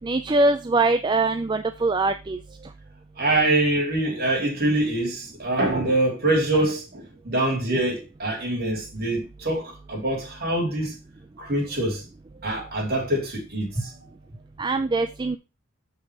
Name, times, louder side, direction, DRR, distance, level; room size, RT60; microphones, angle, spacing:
voice 1, 0.0-2.4 14.6-15.4, right 2 dB, 20° right, 0.3 m, -22 dB
voice 2, 3.2-10.9 11.4-12.0 12.4-13.9, right 1 dB, 45° right, 3.7 m, -24 dB
7.2 x 5.4 x 4.8 m
head